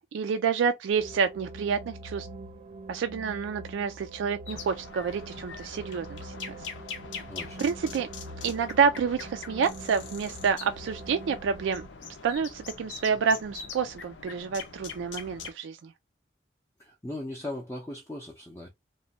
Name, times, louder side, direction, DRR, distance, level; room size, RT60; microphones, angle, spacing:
voice 1, 0.0-2.3 2.9-6.5 7.6-8.1 8.4-11.8 12.2-15.9, right 6 dB, 85° right, 0.3 m, -28 dB
sound 1, 1.0-11.9, right 2 dB, 30° right, 0.6 m, -44 dB
sound 2, 4.5-15.5, left 6 dB, 80° left, 0.6 m, -43 dB
voice 2, 7.3-7.7 16.8-18.7, left 1 dB, 15° left, 0.5 m, -38 dB
3.0 x 2.2 x 2.7 m
head